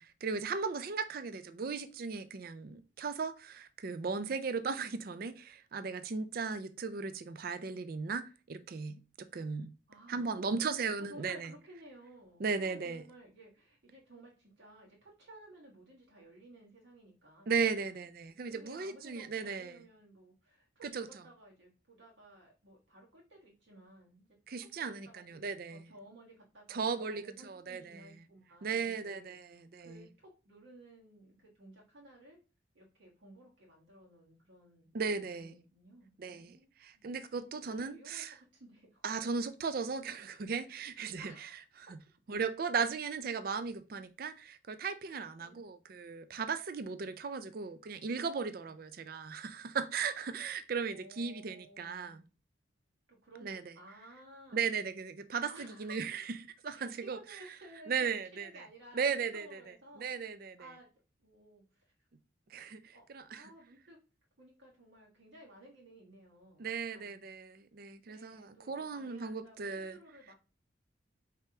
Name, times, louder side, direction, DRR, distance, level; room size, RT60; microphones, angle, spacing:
voice 1, 0.0-9.7 10.1-11.5 12.4-13.0 17.5-19.8 20.8-21.1 24.5-25.9 26.7-28.1 28.6-30.1 34.9-35.5 36.2-38.3 39.0-41.3 42.3-52.2 53.4-53.6 54.5-56.4 56.6-57.2 57.9-58.5 58.9-59.6 60.0-60.6 62.5-63.5 66.6-70.0, right 5 dB, 50° right, 0.4 m, -37 dB
voice 2, 9.9-17.4 17.7-18.1 18.5-24.3 24.8-32.4 32.7-34.9 35.4-39.0 41.2-41.6 45.0-45.6 48.7-48.8 50.9-52.2 53.1-54.6 55.5-55.9 56.6-60.3 60.6-60.9 61.2-61.9 62.9-63.1 63.3-64.0 64.4-67.2 68.0-70.3, right 1 dB, 75° right, 1.4 m, -56 dB
4.8 x 3.3 x 2.8 m
head